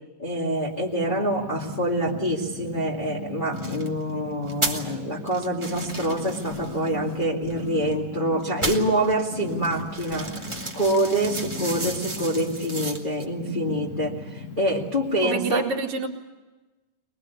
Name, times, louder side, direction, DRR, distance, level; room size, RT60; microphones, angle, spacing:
voice 1, 0.2-10.4 10.7-15.7, right 1 dB, 15° left, -4 dB, 2.0 m, -26 dB
Purr, 0.5-15.3, left 2 dB, 75° left, 7.1 m, -38 dB
sound 1, 3.5-3.9 4.5-4.9 5.3-8.0 8.4-13.2, right 2 dB, 10° right, 1.5 m, -34 dB
voice 2, 15.2-16.1, right 3 dB, 60° right, 1 dB, 3.5 m, -27 dB
23.5 x 21.5 x 8.4 m, 1.1 s
omnidirectional pair, 3.9 m